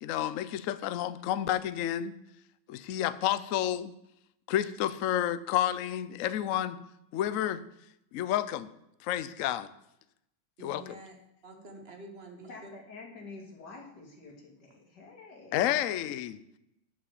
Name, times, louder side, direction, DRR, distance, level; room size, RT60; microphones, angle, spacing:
voice 1, 0.0-2.1 2.7-3.9 4.5-6.8 7.1-7.6 8.1-8.7 9.0-9.7 10.6-10.9 15.5-16.4, left 11 dB, 85° left, 15 dB, 0.7 m, -30 dB
voice 2, 10.6-11.2 11.4-12.7, right 2 dB, 35° right, 4 dB, 1.6 m, -48 dB
voice 3, 12.5-15.6, left 3 dB, 60° left, 1 dB, 2.8 m, -48 dB
8.5 x 7.4 x 7.3 m, 0.82 s
omnidirectional pair, 2.1 m